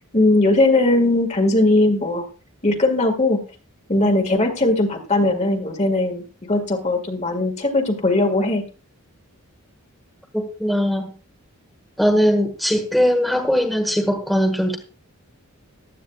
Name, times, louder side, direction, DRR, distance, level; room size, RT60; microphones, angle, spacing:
voice 1, 0.1-2.3 2.6-3.4 3.9-8.6, left 2 dB, 30° left, 5 dB, 1.9 m, -19 dB
voice 2, 10.3-11.1 12.0-14.8, equal, ahead, 2 dB, 1.4 m, -20 dB
15.0 x 12.0 x 2.3 m, 0.35 s
head